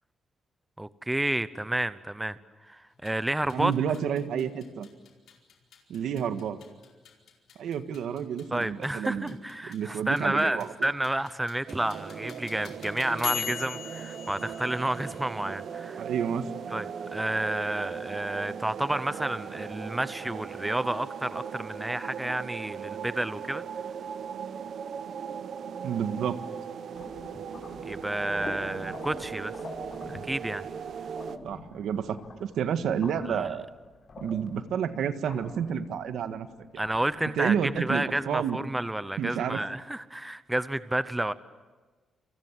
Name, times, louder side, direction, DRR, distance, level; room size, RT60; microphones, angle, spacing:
voice 1, 0.8-2.4 2.7-3.7 8.5-16.0 16.7-23.6 27.8-29.5 30.1-30.6 33.3-33.5 36.8-41.3, right 1 dB, 10° right, 14 dB, 0.8 m, -30 dB
sound 1, 2.9-15.7, left 8 dB, 80° left, 4.6 m, -42 dB
voice 2, 3.5-4.9 5.9-6.6 7.5-9.4 9.6-10.9 16.0-16.5 25.8-26.4 31.4-33.7 34.2-36.5 36.7-36.8 37.4-38.6 39.2-39.6, right 8 dB, 90° right, 9 dB, 1.7 m, -30 dB
sound 2, 11.7-31.4, right 7 dB, 55° right, 1.2 m, -39 dB
sound 3, 26.9-38.1, left 3 dB, 40° left, 5.1 m, -46 dB
28.5 x 27.5 x 7.5 m, 1.3 s
wide cardioid pair, 155°, 0 cm